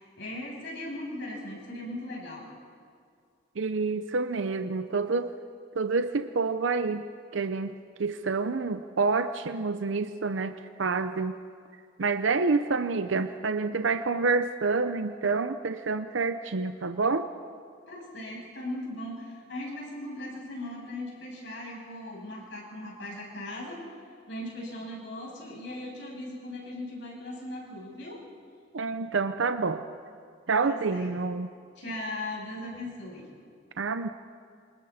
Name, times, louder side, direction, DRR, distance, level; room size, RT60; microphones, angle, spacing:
voice 1, 0.0-2.5 17.9-23.8 24.3-28.2 30.6-31.1 31.8-33.3, left 1 dB, 70° left, -3 dB, 7.6 m, -38 dB
voice 2, 3.6-5.3 5.7-7.0 7.3-7.7 8.0-11.4 12.0-17.3 28.7-29.9 30.5-31.5 33.8-34.1, right 4 dB, 80° right, 9 dB, 0.7 m, -28 dB
28.0 x 26.5 x 4.3 m, 2.2 s
head